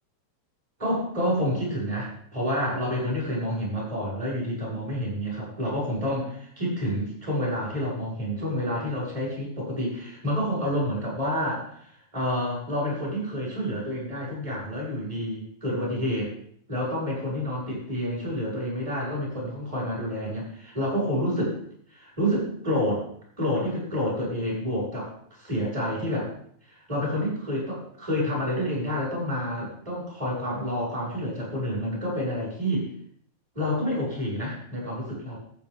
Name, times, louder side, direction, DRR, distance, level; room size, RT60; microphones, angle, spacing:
voice 1, 0.8-16.3 16.7-21.6 21.9-23.1 23.4-26.3 26.7-32.9 33.5-35.4, equal, 10° right, -6 dB, 6.0 m, -29 dB
14.0 x 8.5 x 3.7 m, 0.64 s
omnidirectional pair, 3.4 m